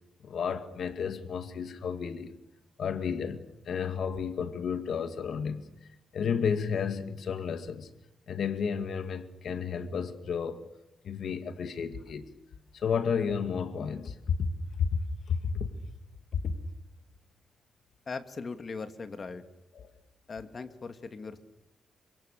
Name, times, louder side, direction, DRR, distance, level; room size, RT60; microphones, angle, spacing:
voice 1, 0.2-2.3 2.8-5.6 6.1-7.9 8.3-10.6 11.0-12.3 12.7-14.5 14.8-14.9 15.3-15.7 16.3-16.5 19.8-19.9, left 6 dB, 60° left, 2.3 m, -32 dB
voice 2, 18.1-19.4 20.3-21.4, left 4 dB, 35° left, 2.4 m, -39 dB
29.0 x 26.0 x 6.7 m
wide cardioid pair, 145°, 0 cm